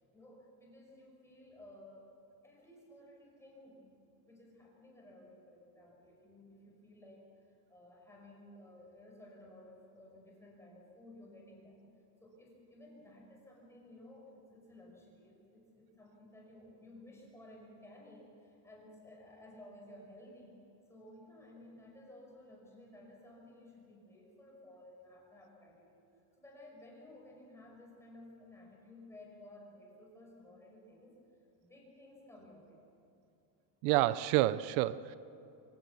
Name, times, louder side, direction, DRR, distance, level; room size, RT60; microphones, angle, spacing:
voice 1, 0.1-2.1 2.4-7.3 7.7-11.8 12.2-20.5 20.9-26.0 26.4-31.2 31.6-32.8, left 1 dB, 5° left, -2 dB, 5.6 m, -56 dB
voice 2, 33.8-35.1, right 16 dB, 85° right, 16 dB, 0.7 m, -29 dB
24.5 x 16.0 x 7.0 m, 2.9 s
cardioid pair, 165°, 46 cm